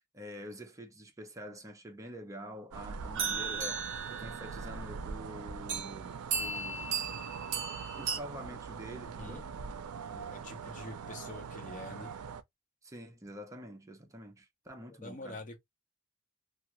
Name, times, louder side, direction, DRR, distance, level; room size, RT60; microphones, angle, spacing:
voice 1, 0.1-6.9 8.0-9.5 12.8-15.4, equal, 15° right, 0.6 m, -46 dB
sound 1, 2.7-12.4, right 6 dB, 80° right, 0.4 m, -43 dB
sound 2, 3.1-4.8 5.7-5.9 6.3-8.2, right 5 dB, 60° right, 0.8 m, -36 dB
voice 2, 9.0-9.4 10.1-12.1 14.9-15.6, left 2 dB, 35° left, 0.7 m, -46 dB
2.4 x 2.3 x 2.9 m
head